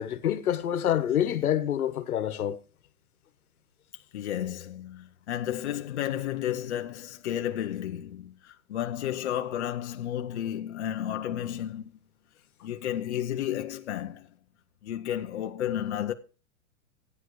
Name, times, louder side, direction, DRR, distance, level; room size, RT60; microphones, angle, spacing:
voice 1, 0.0-2.6, left 10 dB, 85° left, 1.4 m, -27 dB
voice 2, 4.1-12.0 12.6-14.3 14.8-16.1, left 11 dB, 50° left, 0.9 m, -32 dB
15.5 x 9.4 x 3.2 m
hypercardioid pair, 170°, 43 cm